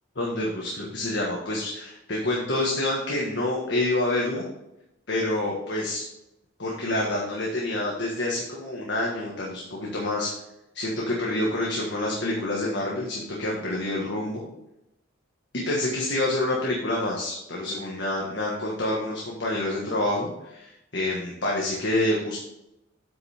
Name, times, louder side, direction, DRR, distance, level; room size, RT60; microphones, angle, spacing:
voice 1, 0.1-4.5 5.1-6.0 6.6-10.3 10.7-14.4 15.5-22.4, left 1 dB, 60° left, -3 dB, 1.6 m, -27 dB
8.8 x 6.0 x 3.5 m, 0.87 s
head